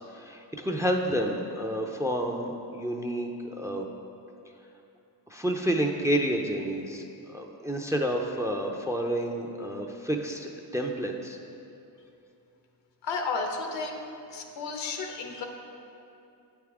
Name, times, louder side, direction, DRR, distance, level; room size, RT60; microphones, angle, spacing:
voice 1, 0.0-3.9 5.3-7.0 7.3-11.4, right 1 dB, 5° right, 2 dB, 0.5 m, -29 dB
voice 2, 13.0-14.0 14.3-15.5, left 4 dB, 70° left, 4 dB, 0.9 m, -32 dB
8.2 x 3.6 x 4.7 m, 2.7 s
supercardioid pair, 65°, 45 cm